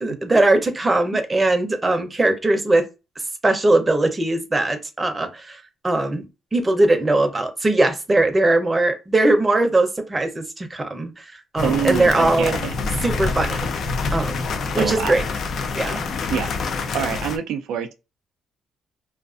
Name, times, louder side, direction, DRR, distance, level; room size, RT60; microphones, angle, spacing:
voice 1, 0.0-2.8 3.4-6.3 6.5-12.6 13.0-13.7 14.1-14.5 14.7-15.2 15.7-16.0, right 2 dB, 20° right, 0.6 m, -20 dB
sound 1, 11.6-17.4, left 4 dB, 60° left, 0.4 m, -26 dB
voice 2, 11.6-12.8 14.8-15.1 16.3-16.5 16.9-17.9, right 8 dB, 85° right, 0.3 m, -25 dB
2.4 x 2.3 x 2.4 m
cardioid pair, 90°, 0 cm